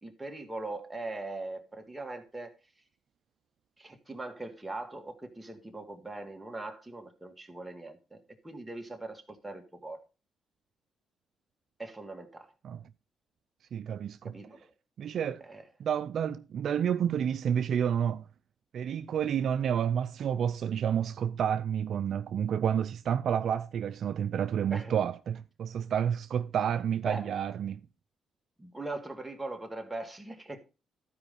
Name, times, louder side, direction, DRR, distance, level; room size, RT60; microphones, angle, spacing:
voice 1, 0.0-2.5 3.8-10.0 11.8-12.5 14.2-14.7 15.4-15.6 24.7-24.9 27.1-27.3 28.6-30.6, right 2 dB, 10° right, 2.0 m, -41 dB
voice 2, 13.7-14.3 15.0-15.4 15.8-18.3 18.7-27.8, right 8 dB, 65° right, 0.4 m, -30 dB
12.5 x 5.0 x 5.3 m
cardioid pair, 95°, 0 cm